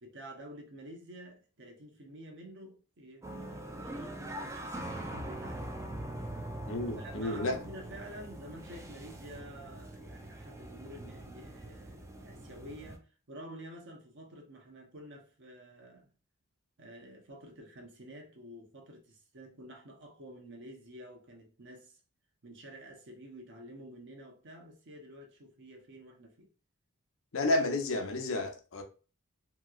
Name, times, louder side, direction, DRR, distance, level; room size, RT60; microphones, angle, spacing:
voice 1, 0.0-5.7 7.0-16.1 16.8-22.0 22.4-26.5, right 1 dB, 55° right, 0.8 m, -49 dB
sound 1, 3.2-13.0, right 1 dB, 15° right, 0.4 m, -43 dB
voice 2, 6.7-7.5 27.3-28.8, left 2 dB, 65° left, 0.6 m, -31 dB
2.9 x 2.8 x 2.4 m
head